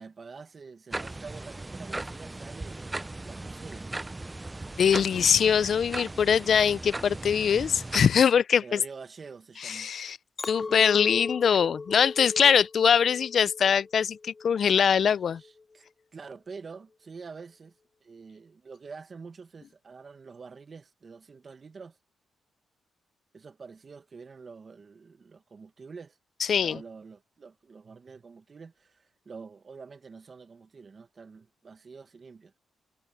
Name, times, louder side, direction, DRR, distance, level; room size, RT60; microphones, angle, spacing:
voice 1, 0.0-2.9 3.3-3.9 7.3-7.7 8.6-9.9 10.5-10.9 15.4-15.9 16.1-17.8 18.0-22.0 23.3-26.2 26.6-32.5, right 5 dB, 40° right, 1.4 m, -46 dB
sound 1, 0.9-8.0, right 2 dB, 15° right, 0.4 m, -38 dB
voice 2, 4.8-8.8 9.6-10.2 10.5-15.4 26.5-26.8, left 7 dB, 55° left, 0.4 m, -23 dB
Chink clink, 10.4-14.7 15.2-15.6, left 4 dB, 25° left, 0.7 m, -38 dB
cardioid pair, 100°, 0 cm